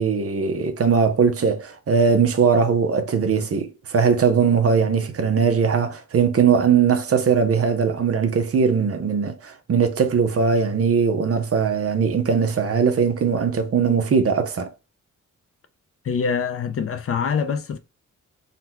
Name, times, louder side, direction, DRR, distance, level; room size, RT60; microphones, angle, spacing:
voice 1, 0.0-14.7, right 6 dB, 50° right, 0.6 m, -20 dB
voice 2, 16.0-17.8, left 6 dB, 45° left, 0.5 m, -24 dB
4.0 x 2.2 x 4.2 m
wide cardioid pair, 145°, 31 cm